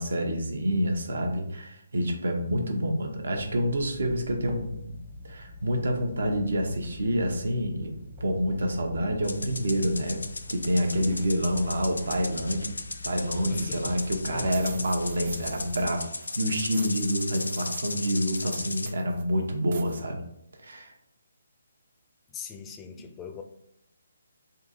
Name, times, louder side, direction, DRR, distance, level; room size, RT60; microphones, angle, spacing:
voice 1, 0.0-5.0 5.2-10.2 10.5-12.7 13.0-20.2 20.6-20.9 22.9-23.0, equal, 75° right, 3 dB, 0.8 m, -28 dB
sound 1, 3.3-15.9, left 2 dB, 30° right, 0.8 m, -44 dB
sound 2, 9.2-18.9, left 3 dB, 90° left, 0.4 m, -36 dB
voice 2, 13.5-14.0 14.3-14.9 22.3-23.4, left 5 dB, 15° left, 5 dB, 0.4 m, -41 dB
sound 3, 14.0-14.1 14.5-16.0 16.2-19.2 19.7-20.0, right 5 dB, 50° right, 0.4 m, -47 dB
3.8 x 2.7 x 3.9 m, 0.78 s
hypercardioid pair, 155°, 0 cm